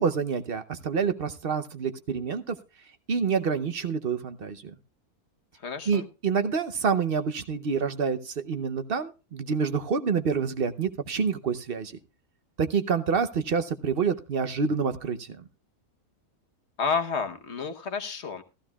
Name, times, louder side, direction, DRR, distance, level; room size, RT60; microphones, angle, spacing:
voice 1, 0.0-2.6 3.1-4.7 5.9-11.9 12.6-15.4, right 5 dB, 50° right, 10 dB, 0.8 m, -27 dB
voice 2, 5.6-6.1 16.8-18.4, left 5 dB, 50° left, 7 dB, 1.3 m, -30 dB
14.5 x 14.0 x 2.3 m, 0.30 s
omnidirectional pair, 1.5 m